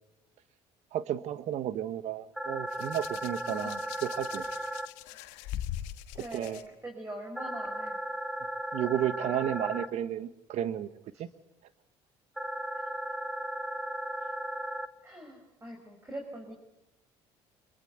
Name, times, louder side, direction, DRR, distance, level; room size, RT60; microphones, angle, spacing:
voice 1, 0.9-4.4 6.3-6.6 8.7-10.9 11.2-11.3, right 11 dB, 65° right, 14 dB, 1.4 m, -32 dB
sound 1, 2.4-4.9 7.4-9.9 12.4-14.9, right 1 dB, 5° right, 1.2 m, -36 dB
Hands, 2.7-6.6 7.7-7.9, left 12 dB, 80° left, 1.4 m, -41 dB
voice 2, 6.2-8.0 9.2-9.7 11.1-11.3 12.7-12.9 15.0-16.5, right 1 dB, 20° right, 2 dB, 5.7 m, -43 dB
25.5 x 21.5 x 8.0 m, 0.88 s
supercardioid pair, 70°, 13 cm